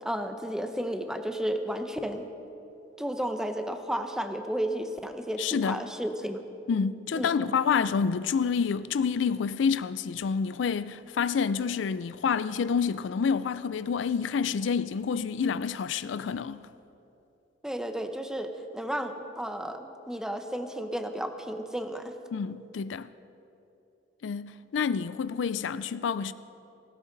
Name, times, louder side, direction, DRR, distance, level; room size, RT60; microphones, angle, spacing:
voice 1, 0.0-2.3 3.0-6.4 7.1-7.5 17.6-22.1, equal, 5° right, 0.8 m, -33 dB
voice 2, 5.4-5.8 6.7-16.7 22.3-23.1 24.2-26.3, left 6 dB, 75° left, 0.4 m, -28 dB
18.0 x 16.0 x 4.0 m
head